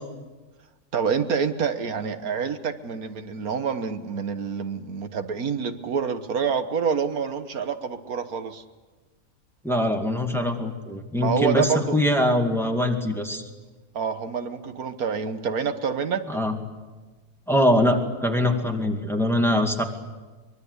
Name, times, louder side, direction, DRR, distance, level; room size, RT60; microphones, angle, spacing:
voice 1, 0.9-8.6 11.1-12.0 13.9-16.3, right 6 dB, 80° right, 9 dB, 1.7 m, -27 dB
voice 2, 9.6-13.4 16.3-16.6 17.5-19.8, left 1 dB, ahead, 3 dB, 2.3 m, -23 dB
24.0 x 23.0 x 8.1 m, 1.3 s
omnidirectional pair, 1.5 m